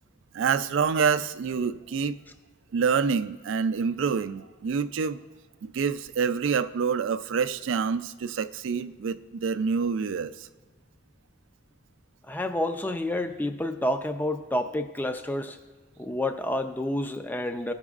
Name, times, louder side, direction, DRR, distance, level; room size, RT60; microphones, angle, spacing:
voice 1, 0.3-2.2 2.7-5.2 5.6-10.5, right 6 dB, 65° right, 12 dB, 0.3 m, -27 dB
voice 2, 12.3-15.6 16.0-17.7, left 1 dB, 10° left, 8 dB, 0.3 m, -29 dB
16.0 x 6.0 x 2.4 m, 1.4 s
head